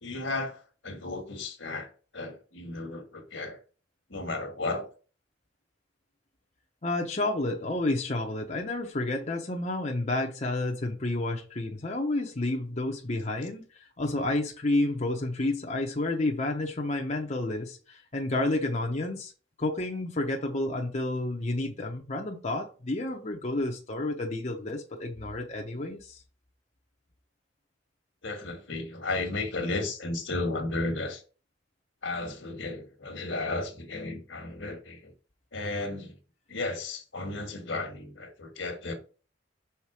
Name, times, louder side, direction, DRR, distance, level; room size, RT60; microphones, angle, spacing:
voice 1, 0.0-3.6 4.1-4.9 28.2-31.2 32.0-35.1 35.5-36.1 36.5-38.9, left 2 dB, 75° left, 1.5 m, -34 dB
voice 2, 6.8-19.3 19.6-26.2, left 2 dB, 35° left, 0.8 m, -30 dB
5.8 x 3.9 x 4.8 m
head